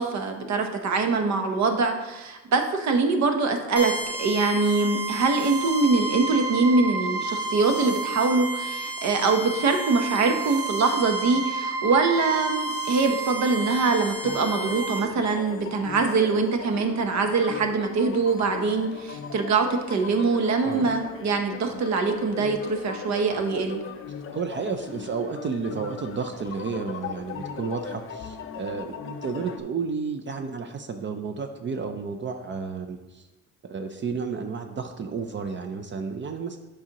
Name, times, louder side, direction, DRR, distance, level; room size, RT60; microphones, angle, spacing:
voice 1, 0.0-3.9 4.2-23.8, right 4 dB, 65° right, 5 dB, 0.9 m, -23 dB
sound 1, 3.8-15.0, right 3 dB, 5° right, 2.0 m, -31 dB
sound 2, 14.2-29.6, left 7 dB, 45° left, 0.5 m, -39 dB
voice 2, 24.3-33.3 33.6-36.6, right 5 dB, 40° right, 6 dB, 0.5 m, -32 dB
7.0 x 4.9 x 2.9 m, 1.1 s
cardioid pair, 90°, 30 cm